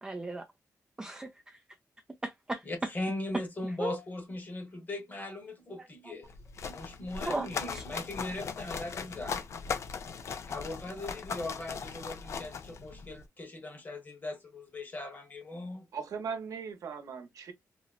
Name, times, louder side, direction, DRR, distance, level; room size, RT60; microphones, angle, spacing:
voice 1, 0.0-0.5 1.0-1.6 2.2-2.7 3.8-4.0 7.3-7.8, right 2 dB, 10° right, 0.4 m, -36 dB
voice 2, 2.6-6.3 6.6-9.4 10.4-15.9, left 2 dB, 30° left, 1.1 m, -39 dB
sound 1, 6.2-13.2, left 6 dB, 50° left, 0.4 m, -39 dB
voice 3, 15.9-17.5, right 6 dB, 80° right, 0.8 m, -38 dB
3.9 x 2.0 x 2.3 m
wide cardioid pair, 150°, 6 cm